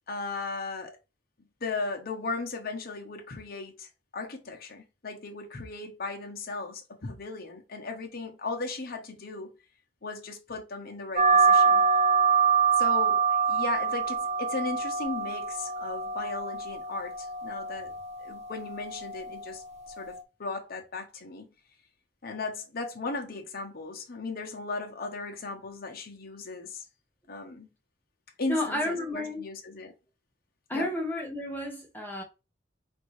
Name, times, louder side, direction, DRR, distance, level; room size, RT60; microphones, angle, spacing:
voice 1, 0.1-1.0 1.6-9.6 10.0-11.8 12.8-17.9 18.2-19.6 20.0-21.5 22.2-26.8 27.3-27.7 28.4-29.9 30.7-30.9, left 3 dB, 50° left, 1.0 m, -36 dB
sound 1, 11.2-20.2, right 6 dB, 35° right, 0.6 m, -26 dB
voice 2, 28.5-29.4 30.7-32.2, left 1 dB, 10° left, 0.9 m, -31 dB
5.0 x 2.7 x 3.2 m
head